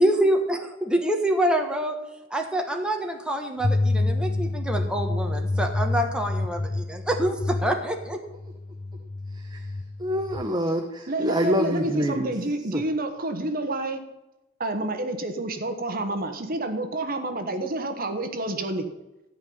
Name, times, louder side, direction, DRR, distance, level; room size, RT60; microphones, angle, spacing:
voice 1, 0.0-2.0 2.3-8.2, right 1 dB, 5° right, 3 dB, 1.3 m, -26 dB
sound 1, 3.6-10.4, left 2 dB, 25° left, 0.4 m, -28 dB
voice 2, 10.0-12.3 12.7-12.8, equal, 20° right, 4 dB, 0.9 m, -26 dB
voice 3, 11.1-14.0 14.6-18.9, right 2 dB, 45° right, 7 dB, 1.3 m, -28 dB
13.5 x 5.5 x 9.5 m, 0.98 s
head